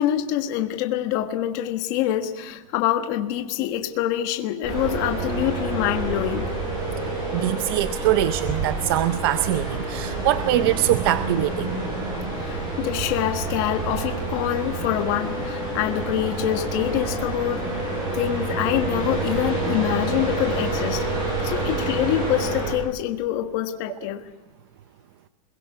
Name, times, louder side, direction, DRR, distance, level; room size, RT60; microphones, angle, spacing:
voice 1, 0.0-6.4 12.4-17.6 18.1-21.0 21.4-24.3, left 12 dB, 35° left, 5 dB, 1.5 m, -25 dB
sound 1, 4.6-22.8, right 2 dB, 20° right, 7.2 m, -28 dB
voice 2, 7.3-11.8, right 13 dB, 40° right, 11 dB, 0.6 m, -23 dB
29.0 x 22.0 x 4.8 m, 1.1 s
supercardioid pair, 180°, 18 cm